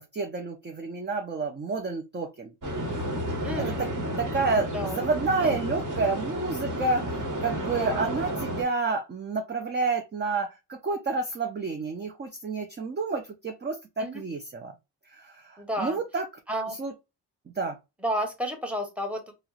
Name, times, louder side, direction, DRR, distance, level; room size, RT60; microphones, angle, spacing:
voice 1, 0.0-2.5 3.6-3.9 4.2-14.7 15.0-16.3 16.8-16.9 17.5-17.8, right 3 dB, 25° right, 0.5 m, -30 dB
sound 1, 2.6-8.6, right 1 dB, 50° right, 1.3 m, -31 dB
voice 2, 3.4-3.9 4.7-5.0 5.4-5.5 7.8-8.1 14.0-14.2 15.6-16.0 16.5-16.8 18.0-19.3, equal, 5° right, 1.0 m, -31 dB
4.1 x 2.0 x 2.3 m
cardioid pair, 90°, 41 cm